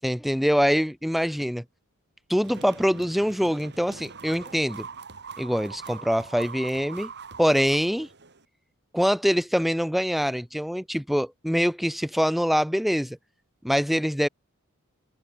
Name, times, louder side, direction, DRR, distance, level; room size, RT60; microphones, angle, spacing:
voice 1, 0.0-1.6 2.3-4.9 5.4-7.1 7.4-8.1 8.9-13.2 13.6-14.3, equal, ahead, 5.2 m, -24 dB
sound 1, 2.4-8.4, right 5 dB, 50° right, 5.9 m, -42 dB
open air
head